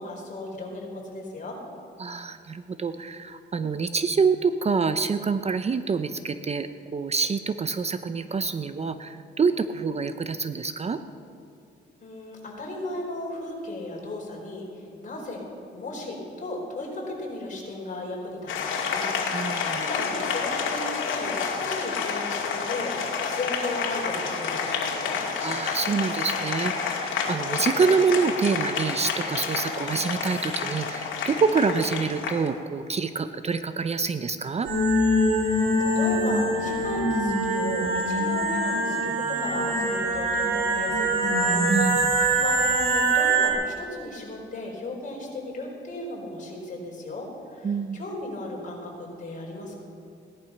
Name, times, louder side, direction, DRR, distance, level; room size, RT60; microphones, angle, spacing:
voice 1, 0.0-1.6 12.0-15.4 15.7-25.2 35.4-42.1 42.4-49.8, left 2 dB, 40° left, -1 dB, 4.8 m, -36 dB
voice 2, 2.0-11.0 19.3-19.8 25.4-34.7 41.7-42.1 47.6-48.0, right 5 dB, 30° right, 10 dB, 0.7 m, -26 dB
Applause, 18.5-32.5, left 5 dB, 80° left, 2.4 m, -29 dB
sound 1, 34.6-43.5, right 1 dB, 85° right, 3.0 m, -23 dB
18.0 x 11.5 x 5.9 m, 2.6 s
cardioid pair, 90°, 20 cm